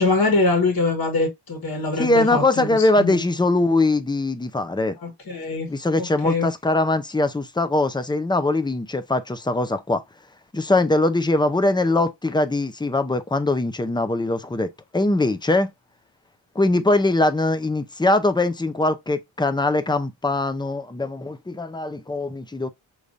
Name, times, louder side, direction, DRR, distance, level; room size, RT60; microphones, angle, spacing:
voice 1, 0.0-3.2 5.0-5.7 6.0-6.5, left 3 dB, 45° left, 1.8 m, -23 dB
voice 2, 2.0-5.0 5.7-10.0 10.5-15.7 16.5-22.7, left 2 dB, 10° left, 0.5 m, -22 dB
5.0 x 3.2 x 2.5 m
wide cardioid pair, 95°, 49 cm